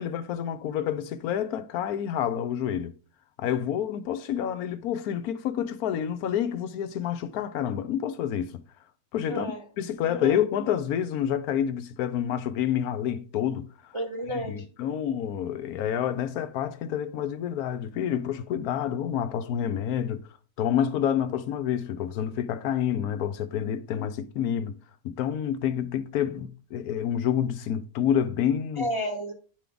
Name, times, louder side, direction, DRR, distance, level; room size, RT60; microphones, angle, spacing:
voice 1, 0.0-2.9 3.4-8.6 9.1-13.9 14.3-20.2 20.6-24.8 25.0-28.9, left 9 dB, 80° left, 1.1 m, -28 dB
voice 2, 9.3-9.6 10.1-10.4 13.9-14.7 28.8-29.3, equal, 35° right, 0.4 m, -31 dB
9.9 x 3.4 x 3.8 m
omnidirectional pair, 1.6 m